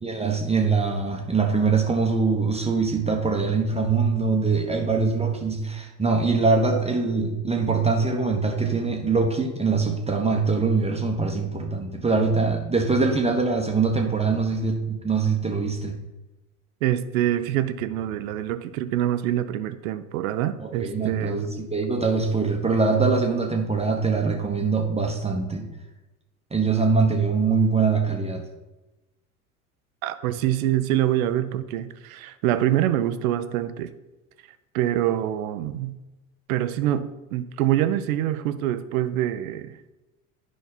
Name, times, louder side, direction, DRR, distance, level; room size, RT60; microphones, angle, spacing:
voice 1, 0.0-16.0 20.6-25.7 26.5-28.4, right 4 dB, 15° right, 2 dB, 1.0 m, -23 dB
voice 2, 16.8-21.4 30.0-33.9 34.7-36.0 36.5-39.7, right 12 dB, 65° right, 12 dB, 0.7 m, -25 dB
9.4 x 5.1 x 4.1 m, 1.1 s
hypercardioid pair, 75°, 45 cm